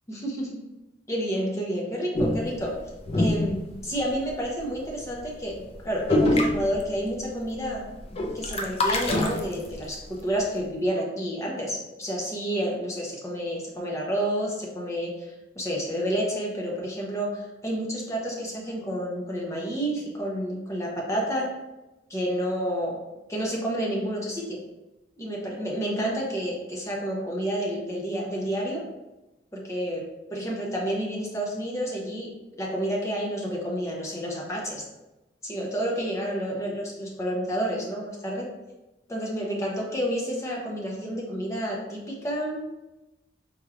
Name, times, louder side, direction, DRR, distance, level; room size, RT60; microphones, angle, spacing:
voice 1, 0.1-0.6 1.1-2.8 3.2-7.9 8.3-21.5 22.1-23.0 23.3-24.6 25.2-28.9 29.5-32.3 32.6-34.8 35.4-38.5 39.1-42.7, equal, 15° left, -3 dB, 0.8 m, -30 dB
Wasser - Badewanne voll Bewegung, 2.1-4.4 4.7-5.0 5.3-5.5 5.7-5.8 6.1-7.3 7.5-10.0, left 1 dB, 35° left, 0.4 m, -25 dB
4.5 x 3.2 x 2.4 m, 1.0 s
head